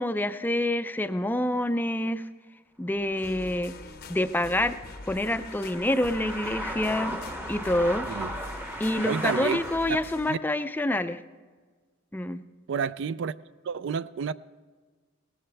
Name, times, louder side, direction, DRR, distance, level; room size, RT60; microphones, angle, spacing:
voice 1, 0.0-2.2 2.8-3.7 4.1-4.8 5.1-7.1 7.5-8.1 8.8-11.2 12.1-12.4, left 1 dB, 10° left, 0.4 m, -27 dB
sound 1, 3.0-10.1, equal, 10° right, 0.8 m, -37 dB
sound 2, 3.2-10.3, left 3 dB, 50° left, 0.7 m, -44 dB
voice 2, 8.1-8.4 9.0-9.6 9.9-10.0 10.3-10.4 12.7-13.3 13.6-14.3, right 6 dB, 65° right, 0.4 m, -30 dB
18.5 x 14.5 x 3.4 m
head